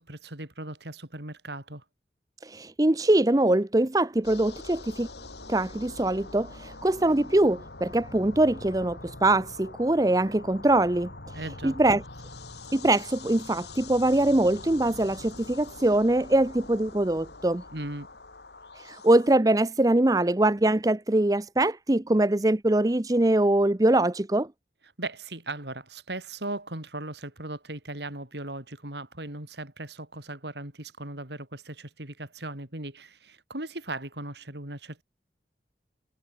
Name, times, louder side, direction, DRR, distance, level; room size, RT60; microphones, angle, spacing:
voice 1, 0.0-1.8 11.3-11.8 17.7-18.1 25.0-35.0, right 2 dB, 75° right, 5.3 m, -38 dB
voice 2, 2.4-5.1 5.5-11.1 11.6-12.0 12.7-17.6 18.8-24.5, right 1 dB, 20° right, 0.7 m, -23 dB
sound 1, 4.2-19.4, left 2 dB, 75° left, 3.9 m, -44 dB
head